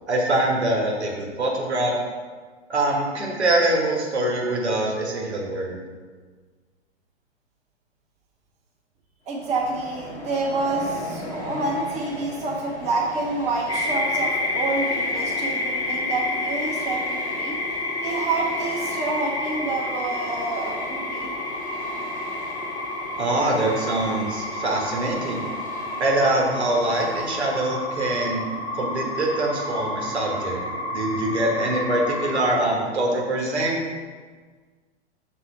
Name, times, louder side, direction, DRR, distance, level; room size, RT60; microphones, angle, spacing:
voice 1, 0.1-1.9 2.7-5.8 23.2-25.4 26.0-28.4 28.7-30.6 30.9-33.8, right 1 dB, 75° right, -1 dB, 1.4 m, -24 dB
Train, 9.3-28.2, left 1 dB, 70° left, 1.4 m, -39 dB
voice 2, 9.3-17.6 18.0-21.4, right 3 dB, 20° right, -4 dB, 1.2 m, -28 dB
sound 1, 13.7-32.5, left 2 dB, 10° left, 0.8 m, -29 dB
6.6 x 3.5 x 4.6 m, 1.5 s
figure-of-eight pair, 105°, 34 cm